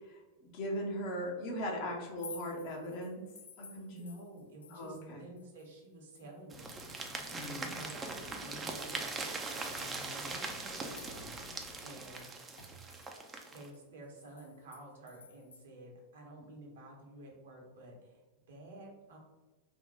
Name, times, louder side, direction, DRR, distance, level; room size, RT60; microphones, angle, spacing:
voice 1, 0.1-3.2 3.6-3.9 4.7-5.3 7.3-7.7, equal, 45° left, 0 dB, 0.9 m, -39 dB
sound 1, 2.0-5.1 5.4-8.6 9.0-9.1 9.6-11.5 11.8-11.9 12.2-15.6, left 5 dB, 70° left, 0.3 m, -55 dB
voice 2, 3.9-6.7 7.4-8.1 8.4-12.3 13.5-19.2, right 1 dB, 60° right, -1 dB, 1.0 m, -51 dB
sound 2, 6.5-13.7, right 3 dB, 20° right, 0.5 m, -41 dB
sound 3, 6.5-12.1, left 2 dB, 80° right, 1.1 m, -53 dB
3.5 x 2.3 x 4.1 m, 1.2 s
figure-of-eight pair, 90°, 0 cm